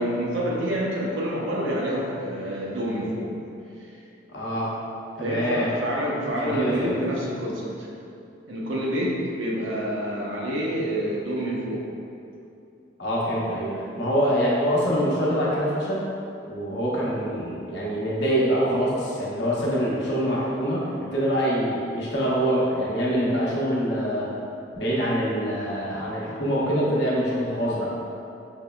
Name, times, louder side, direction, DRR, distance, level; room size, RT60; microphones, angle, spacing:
voice 1, 0.0-3.3 5.2-7.9 8.5-11.8, equal, 90° right, -4 dB, 0.8 m, -27 dB
voice 2, 4.3-4.7 5.1-5.7 6.4-7.0 13.0-16.0 16.5-24.3 24.7-27.9, equal, 65° left, -6 dB, 0.9 m, -25 dB
5.4 x 3.1 x 2.2 m, 2.6 s
head